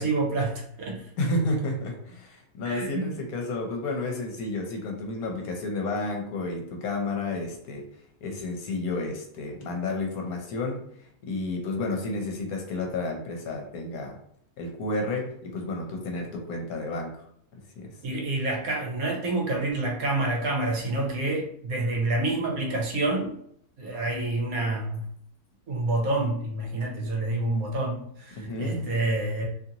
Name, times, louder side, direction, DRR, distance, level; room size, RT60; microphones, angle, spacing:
voice 1, 0.0-1.0 2.6-3.1 18.0-23.3 23.8-25.1 25.7-29.5, right 2 dB, 70° right, -1 dB, 1.1 m, -28 dB
voice 2, 1.2-7.8 8.2-10.8 11.2-14.1 14.6-17.2 17.8-17.9 28.4-28.9, left 2 dB, 70° left, 1 dB, 1.1 m, -31 dB
2.8 x 2.5 x 2.8 m, 0.66 s
omnidirectional pair, 1.7 m